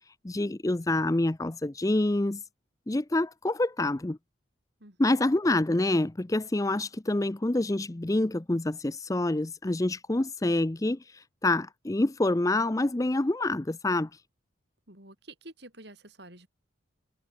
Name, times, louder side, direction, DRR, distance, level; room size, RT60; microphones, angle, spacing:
voice 1, 0.2-2.4 2.9-4.2 5.0-14.1, left 2 dB, 15° left, 0.5 m, -27 dB
voice 2, 4.8-5.2 14.9-16.5, right 2 dB, 55° right, 5.1 m, -49 dB
head